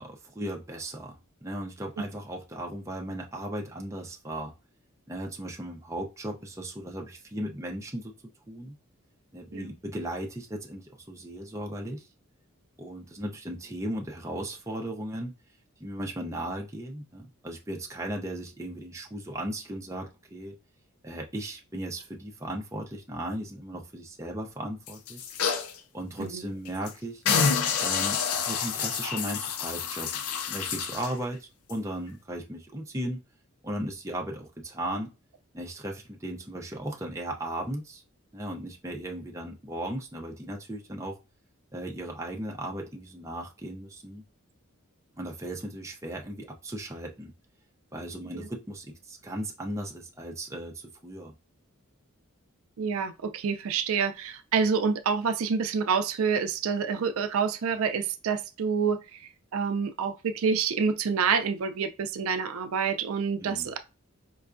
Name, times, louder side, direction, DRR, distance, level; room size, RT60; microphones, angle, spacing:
voice 1, 0.0-4.5 5.1-8.1 8.5-8.8 9.3-12.1 12.8-15.3 15.8-20.5 21.0-25.3 25.9-27.2 27.8-30.1 30.5-33.2 33.6-35.1 35.5-38.0 38.3-41.2 41.7-44.2 45.2-47.3 47.9-51.3 63.4-63.7, right 1 dB, 15° right, 0.5 m, -36 dB
sound 1, 24.9-25.8 26.2-26.3 26.7-26.9 27.3-31.1 31.7-31.8, left 6 dB, 80° left, 0.5 m, -28 dB
voice 2, 52.8-59.2 59.5-63.8, right 6 dB, 75° right, 0.4 m, -27 dB
4.5 x 2.2 x 2.5 m
head